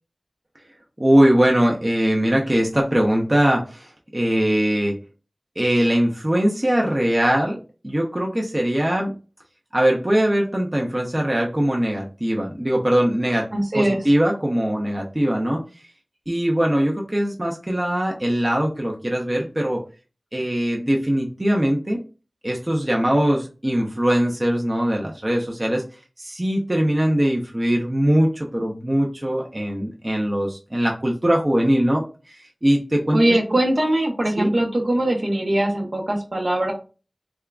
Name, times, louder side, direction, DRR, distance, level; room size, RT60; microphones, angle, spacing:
voice 1, 1.0-5.0 5.6-7.6 7.8-9.1 9.7-13.5 13.7-15.6 16.3-19.8 20.3-22.0 22.4-25.8 26.2-33.2 34.4-34.5, equal, 30° right, -1 dB, 0.7 m, -21 dB
voice 2, 13.5-14.0 33.1-36.7, right 1 dB, 60° right, 1 dB, 1.0 m, -21 dB
3.5 x 3.4 x 2.4 m, 0.34 s
wide cardioid pair, 55°, 0 cm